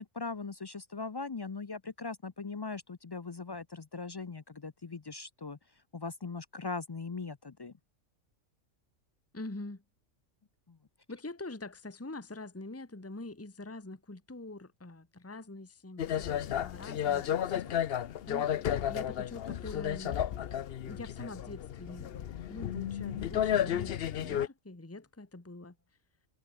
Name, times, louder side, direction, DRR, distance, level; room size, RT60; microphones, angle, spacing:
voice 1, 0.0-5.6 5.9-7.7 10.7-10.8, left 4 dB, 40° left, 0.3 m, -40 dB
voice 2, 9.3-9.8 11.1-17.9 18.3-20.2 20.8-25.8, left 2 dB, 10° left, 1.4 m, -45 dB
sound 1, 16.0-24.5, left 10 dB, 55° left, 0.8 m, -33 dB
omnidirectional pair, 1.3 m